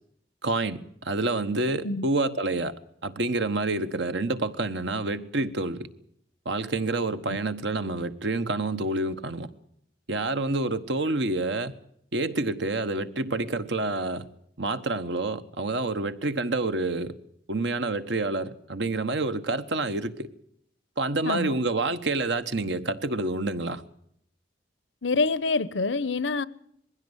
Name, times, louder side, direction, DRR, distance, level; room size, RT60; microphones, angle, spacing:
voice 1, 0.4-2.7 3.0-5.9 6.4-9.5 10.1-11.7 12.1-14.3 14.6-17.2 17.5-20.3 21.0-23.8, right 2 dB, 75° right, 1.3 m, -28 dB
voice 2, 21.2-21.5 25.0-26.4, left 3 dB, 85° left, 0.9 m, -26 dB
21.0 x 16.0 x 8.1 m
head